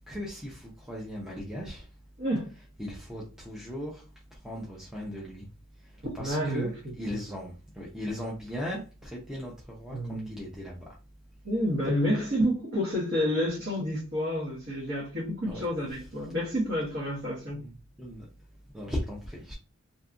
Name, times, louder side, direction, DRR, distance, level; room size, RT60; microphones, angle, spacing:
voice 1, 0.1-1.8 2.8-4.0 4.3-5.5 6.1-6.7 7.0-10.8 15.4-15.7 17.5-18.3 18.7-19.5, equal, 5° right, 0.5 m, -37 dB
voice 2, 2.2-2.5 6.2-6.9 9.9-10.4 11.4-17.6, equal, 55° right, 1.0 m, -29 dB
2.7 x 2.3 x 2.4 m
head